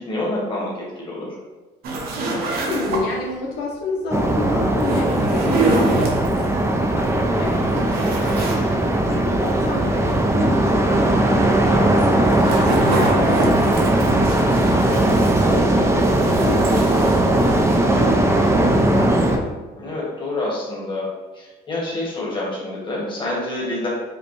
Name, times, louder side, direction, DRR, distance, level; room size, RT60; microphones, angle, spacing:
voice 1, 0.0-1.4 11.2-11.9 19.8-23.9, left 2 dB, 30° left, -5 dB, 1.5 m, -28 dB
sound 1, 1.8-3.3 4.7-6.5 7.0-7.1 7.5-8.6 9.0-9.1 11.9-15.7 16.0-17.7, right 2 dB, 65° right, 0.9 m, -26 dB
voice 2, 2.7-10.0 10.3-11.3 11.9-15.0 15.3-18.1 18.6-19.5, left 3 dB, 85° left, -3 dB, 0.8 m, -30 dB
sound 2, 4.1-19.4, right 1 dB, 15° right, 0.4 m, -18 dB
5.1 x 2.2 x 3.1 m, 1.2 s
cardioid pair, 110°, 17 cm